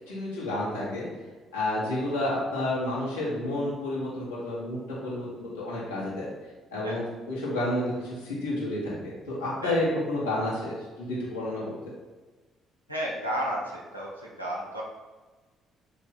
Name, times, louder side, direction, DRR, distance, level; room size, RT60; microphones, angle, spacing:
voice 1, 0.1-1.0 1.5-4.8 5.0-6.3 6.7-11.7, left 1 dB, 75° left, -7 dB, 1.0 m, -30 dB
voice 2, 12.9-13.6 13.9-14.8, equal, 90° right, -4 dB, 0.5 m, -32 dB
2.7 x 2.6 x 4.1 m, 1.3 s
figure-of-eight pair, 45°, 0 cm